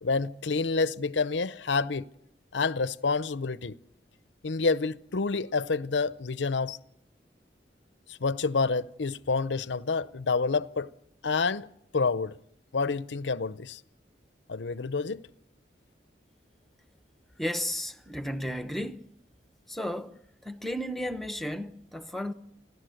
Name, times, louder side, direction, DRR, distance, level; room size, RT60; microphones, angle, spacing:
voice 1, 0.0-2.1 2.5-3.8 4.4-6.8 8.1-10.9 11.2-11.7 11.9-12.3 12.7-13.8 14.5-15.2, left 4 dB, 90° left, 0.7 m, -28 dB
voice 2, 17.4-19.1 19.7-22.3, equal, ahead, 0.9 m, -34 dB
30.0 x 12.0 x 7.9 m
head